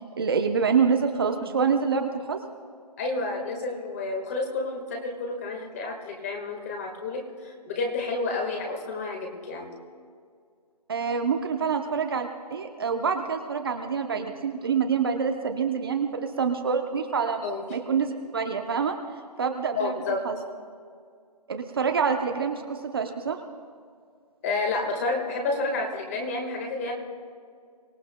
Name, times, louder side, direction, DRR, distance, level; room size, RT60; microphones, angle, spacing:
voice 1, 0.2-2.4 10.9-17.4 17.7-19.0 19.4-19.9 20.2-20.4 21.5-23.4, right 6 dB, 35° right, 4 dB, 0.8 m, -26 dB
voice 2, 3.0-9.7 17.4-17.6 19.8-20.2 24.4-26.9, left 3 dB, 20° left, 2 dB, 1.6 m, -30 dB
24.5 x 17.0 x 2.2 m, 2.2 s
figure-of-eight pair, 160°, 21 cm